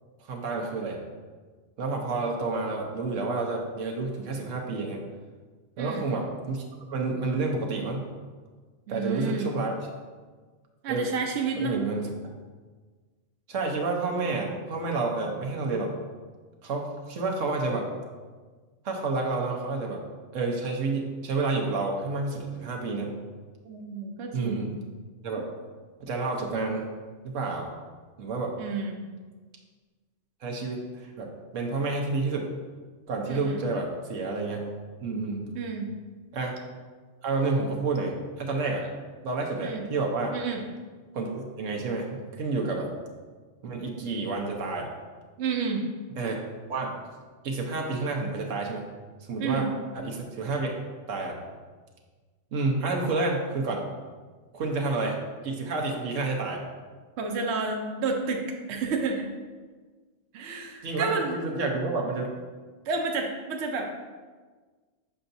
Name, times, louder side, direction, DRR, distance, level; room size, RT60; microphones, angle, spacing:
voice 1, 0.3-1.0 1.8-5.0 5.8-6.6 6.9-8.1 8.9-9.8 10.9-11.1 11.6-12.1 13.5-15.9 16.6-17.9 18.8-20.0 20.3-23.1 24.3-24.7 25.2-25.5 26.0-26.9 27.2-27.7 28.2-28.5 30.4-32.5 33.1-34.7 35.0-35.5 36.3-36.6 37.2-38.8 39.2-40.3 41.1-42.9 43.6-44.9 46.2-46.4 46.7-46.9 47.4-48.9 49.3-49.6 49.9-50.7 51.1-51.4 52.5-53.8 54.5-55.2 55.4-56.6 60.8-62.3, right 3 dB, 90° right, 0 dB, 1.3 m, -29 dB
voice 2, 5.8-6.1 8.9-9.5 10.8-11.8 23.6-24.7 28.6-29.0 33.2-33.6 35.5-35.9 39.6-39.8 40.3-40.6 45.4-45.8 49.4-49.7 57.2-59.3 60.3-61.4 62.9-64.0, right 4 dB, 65° right, 2 dB, 0.9 m, -30 dB
7.0 x 5.6 x 2.6 m, 1.4 s
omnidirectional pair, 1.3 m